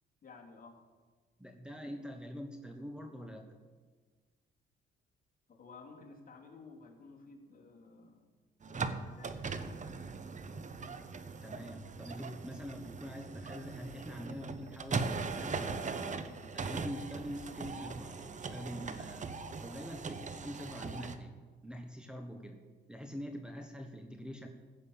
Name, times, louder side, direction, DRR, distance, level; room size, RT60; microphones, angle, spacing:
voice 1, 0.2-0.8 5.5-8.3 8.7-9.5, left 4 dB, 45° left, -1 dB, 3.1 m, -54 dB
voice 2, 1.4-3.5 11.4-16.0 16.5-19.3 19.6-21.4 21.6-22.6 22.9-24.5, equal, 5° right, 3 dB, 1.3 m, -44 dB
sound 1, 8.6-21.1, right 4 dB, 40° right, 1.1 m, -40 dB
15.5 x 6.8 x 8.7 m, 1.4 s
cardioid pair, 90°, 20 cm